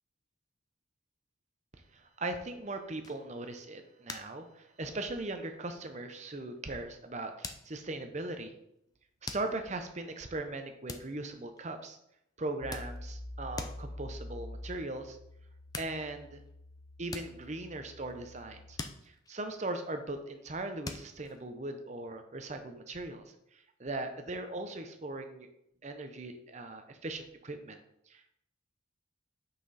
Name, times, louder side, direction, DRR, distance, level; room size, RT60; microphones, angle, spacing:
voice 1, 1.9-8.5 9.2-12.0 12.4-15.2 15.8-16.4 17.0-18.8 19.3-23.2 23.5-25.5 25.8-27.8 28.1-28.3, right 2 dB, 35° right, 7 dB, 0.7 m, -39 dB
sound 1, 3.0-3.5 4.1-4.5 4.8-5.2 5.8-5.9 7.4-8.1 9.3-9.8 10.9-11.8 12.4-13.3 13.6-14.0 15.4-15.5 15.7-16.5 17.0-18.4 18.8-20.0 20.8-21.5, left 3 dB, 20° left, 0.4 m, -44 dB
sound 2, 12.6-18.8, left 1 dB, 65° left, 0.9 m, -46 dB
6.0 x 5.8 x 4.1 m, 0.79 s
head